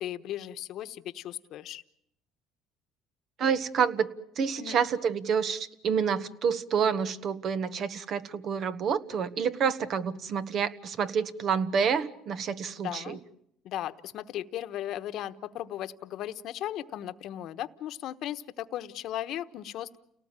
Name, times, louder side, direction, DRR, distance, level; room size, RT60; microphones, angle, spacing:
voice 1, 0.0-1.8 4.6-4.8 12.8-13.2 13.6-20.0, left 12 dB, 65° left, 11 dB, 1.1 m, -36 dB
voice 2, 3.4-4.1 4.4-13.2, right 7 dB, 55° right, 12 dB, 1.5 m, -28 dB
30.0 x 18.5 x 9.0 m, 0.79 s
supercardioid pair, 90°, 0 cm